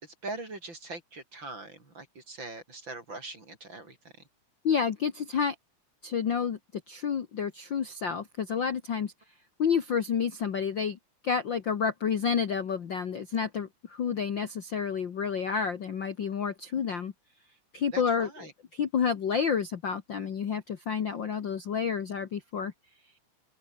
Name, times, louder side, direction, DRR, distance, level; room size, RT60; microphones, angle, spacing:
voice 1, 0.0-4.0 17.9-18.5, right 2 dB, 35° right, 6.3 m, -41 dB
voice 2, 4.6-5.6 6.0-6.6 6.9-9.1 9.6-11.0 11.2-17.1 17.7-18.3 18.7-22.7, left 6 dB, 45° left, 1.7 m, -29 dB
open air
omnidirectional pair, 3.6 m